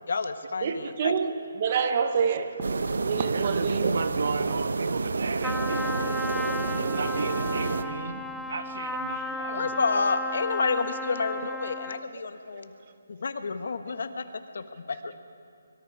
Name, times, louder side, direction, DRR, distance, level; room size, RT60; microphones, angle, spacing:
voice 1, 0.1-1.1 9.5-12.7 13.1-14.2 14.5-15.1, left 4 dB, 60° left, 9 dB, 1.4 m, -29 dB
voice 2, 0.6-2.8 3.0-4.0 12.5-12.6, right 6 dB, 30° right, 10 dB, 0.9 m, -27 dB
sound 1, 2.6-7.8, right 3 dB, 75° right, 1.0 m, -29 dB
voice 3, 3.3-6.3 6.7-9.8, right 4 dB, 50° right, 9 dB, 1.3 m, -35 dB
Trumpet, 5.4-12.1, left 2 dB, ahead, 0.4 m, -34 dB
24.5 x 23.5 x 4.9 m, 2.7 s
hypercardioid pair, 175°, 0 cm